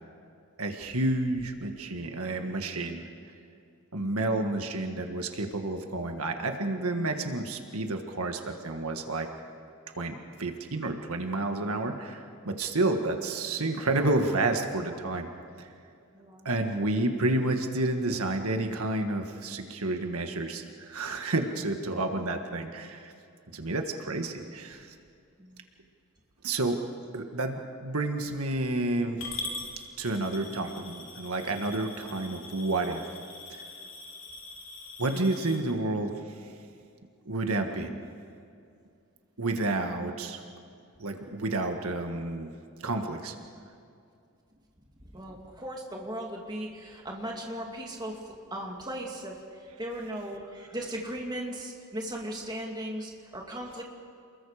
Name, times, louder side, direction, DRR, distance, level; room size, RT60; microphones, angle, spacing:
voice 1, 0.6-3.1 3.9-9.3 10.0-15.3 15.6-15.7 16.4-23.1 23.5-24.9 26.4-26.8 27.1-29.2 30.0-33.1 33.5-33.6 35.0-36.4 37.2-38.0 39.4-40.4 41.0-42.5 42.8-43.3, right 2 dB, 85° right, 5 dB, 1.6 m, -30 dB
voice 2, 16.1-16.5 22.1-22.3 25.4-25.6 45.0-53.8, right 1 dB, 20° right, 0 dB, 2.5 m, -38 dB
Coin (dropping) / Glass, 29.2-35.6, left 3 dB, 60° left, 3.4 m, -42 dB
28.5 x 21.5 x 5.0 m, 2.4 s
head